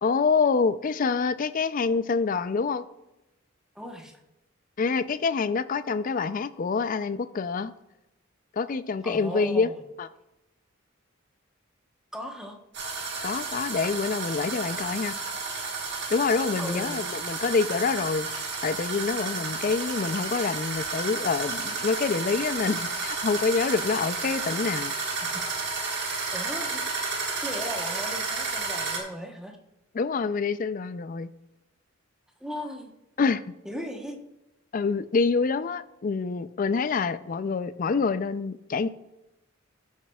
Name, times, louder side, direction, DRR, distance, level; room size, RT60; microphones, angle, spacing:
voice 1, 0.0-2.8 4.8-7.7 8.5-9.7 10.0-10.1 13.2-15.1 16.1-18.3 18.6-24.9 29.9-31.3 33.2-33.4 34.7-38.9, left 4 dB, 40° left, 14 dB, 0.4 m, -26 dB
voice 2, 3.7-4.2 9.0-9.8 12.1-12.6 16.6-17.0 25.2-25.4 26.3-27.1 27.4-29.6 32.4-32.9 33.6-34.2, equal, 5° right, 2 dB, 1.0 m, -37 dB
sound 1, 12.7-29.0, right 4 dB, 55° right, 1.9 m, -32 dB
14.0 x 7.4 x 2.3 m, 0.93 s
head